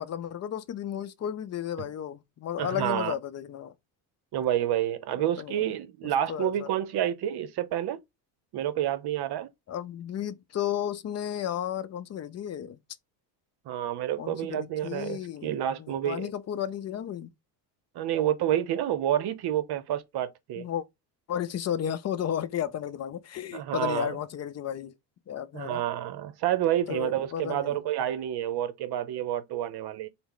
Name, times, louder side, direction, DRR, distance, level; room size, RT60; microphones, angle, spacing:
voice 1, 0.0-3.7 5.4-5.6 6.0-6.7 9.7-12.8 14.2-17.3 20.6-20.9 21.3-24.9 25.3-25.8 26.9-27.8, left 10 dB, 35° left, 0.5 m, -33 dB
voice 2, 2.6-3.1 4.3-8.0 8.5-9.5 13.7-16.3 17.9-20.7 23.5-24.2 25.5-30.1, right 11 dB, 60° right, 0.8 m, -29 dB
4.1 x 2.1 x 3.8 m
supercardioid pair, 85°, 43 cm